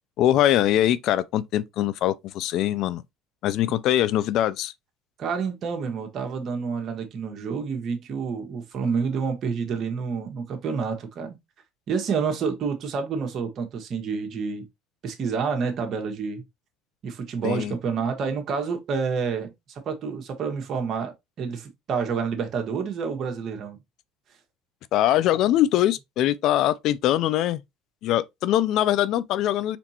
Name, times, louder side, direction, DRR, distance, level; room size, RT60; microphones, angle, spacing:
voice 1, 0.2-3.0 3.4-4.7 17.4-17.7 24.9-27.6 28.0-29.8, left 12 dB, 65° left, 0.4 m, -22 dB
voice 2, 5.2-11.3 11.9-14.7 15.0-16.4 17.0-19.5 19.8-23.8, right 5 dB, 50° right, 1.4 m, -28 dB
4.3 x 4.0 x 2.9 m
supercardioid pair, 95°, 0 cm